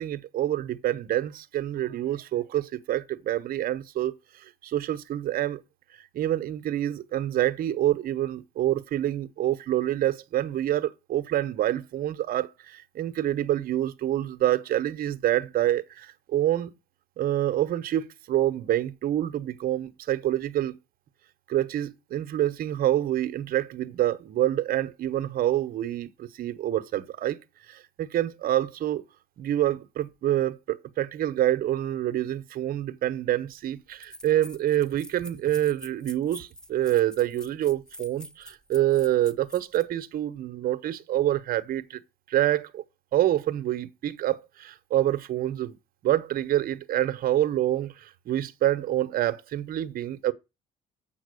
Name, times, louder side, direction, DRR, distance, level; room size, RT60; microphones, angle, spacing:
voice 1, 0.0-5.6 5.9-16.7 17.2-20.8 21.5-27.4 27.7-29.0 29.4-42.0 42.3-42.8 43.1-45.8 46.0-50.3, right 13 dB, 60° right, 0.9 m, -27 dB
sound 1, 33.4-33.5 34.0-39.9, equal, 5° left, 0.9 m, -46 dB
7.5 x 5.8 x 6.5 m
cardioid pair, 110°, 17 cm